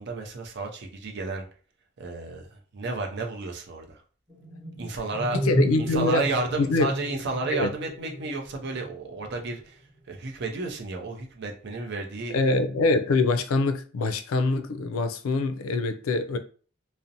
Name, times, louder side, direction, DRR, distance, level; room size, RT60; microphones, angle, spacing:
voice 1, 0.0-1.5 2.0-4.0 4.8-9.8 10.1-12.5, right 3 dB, 55° right, 0.5 m, -32 dB
sound 1, 4.3-9.6, equal, ahead, 0.8 m, -33 dB
voice 2, 5.3-6.2 6.6-6.9 7.5-7.7 12.3-16.4, left 3 dB, 90° left, 0.4 m, -24 dB
2.5 x 2.0 x 2.7 m
head